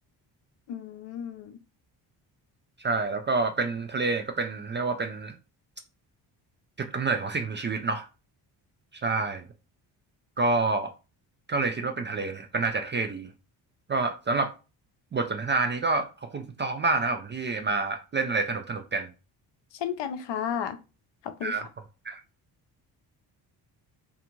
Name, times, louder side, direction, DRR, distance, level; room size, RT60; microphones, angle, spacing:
voice 1, 0.7-1.6 19.8-20.8 21.2-21.5, left 8 dB, 60° left, 0.6 m, -33 dB
voice 2, 2.8-5.3 6.8-8.1 9.0-9.4 10.4-10.9 11.5-13.3 13.9-14.5 15.1-19.1 21.4-21.6 22.1-22.2, right 3 dB, 25° right, 0.3 m, -28 dB
2.5 x 2.4 x 2.9 m
supercardioid pair, 50°, 49 cm